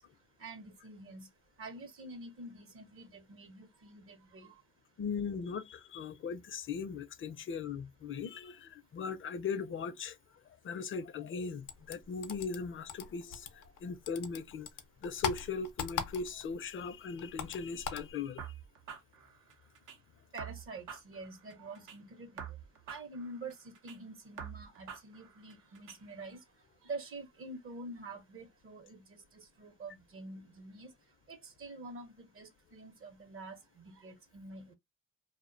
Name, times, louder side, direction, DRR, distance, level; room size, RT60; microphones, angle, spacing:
voice 1, 0.4-1.3 1.6-4.6 20.3-22.3 22.9-26.4 26.8-30.9 31.3-34.7, right 2 dB, 45° right, 0.7 m, -47 dB
voice 2, 5.0-10.2 10.6-14.7 15.0-18.4, left 5 dB, 40° left, 0.5 m, -39 dB
sound 1, 11.7-13.8 14.1-16.5 16.8-18.1, left 8 dB, 85° left, 0.6 m, -39 dB
sound 2, 18.4-20.0 20.4-22.0 22.4-24.0 24.4-26.0, right 8 dB, 85° right, 0.7 m, -47 dB
2.4 x 2.1 x 2.4 m
cardioid pair, 90°, 30 cm